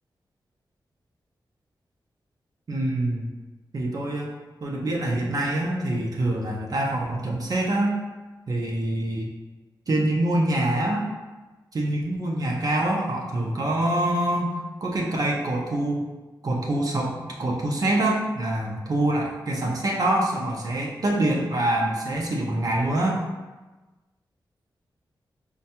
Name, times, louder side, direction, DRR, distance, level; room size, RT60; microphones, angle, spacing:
voice 1, 2.7-3.3 3.7-4.3 4.6-8.0 8.5-9.3 9.9-11.1 11.7-16.1 16.4-23.2, right 1 dB, 50° right, -2 dB, 0.5 m, -25 dB
4.4 x 2.2 x 2.8 m, 1.2 s
wide cardioid pair, 80°, 8 cm